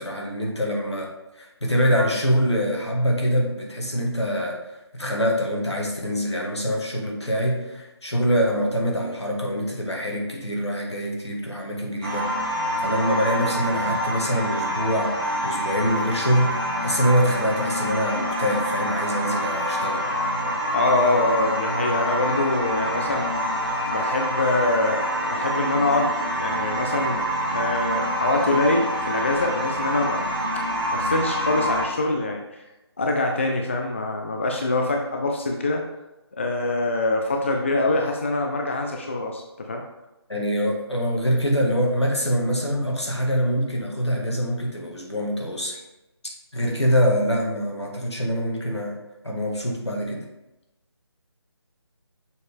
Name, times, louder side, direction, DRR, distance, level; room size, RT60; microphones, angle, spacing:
voice 1, 0.0-4.6 4.9-20.1 40.3-45.8 46.5-49.0 49.2-50.3, equal, 75° left, 0 dB, 1.8 m, -24 dB
sound 1, 12.0-31.9, equal, 55° right, 2.0 m, -26 dB
voice 2, 20.7-23.3 23.9-27.2 27.5-30.3 30.5-30.6 30.9-32.6 33.0-35.8 36.4-39.8, left 2 dB, 30° left, 2 dB, 0.4 m, -24 dB
6.5 x 5.0 x 3.5 m, 0.98 s
figure-of-eight pair, 155°, 14 cm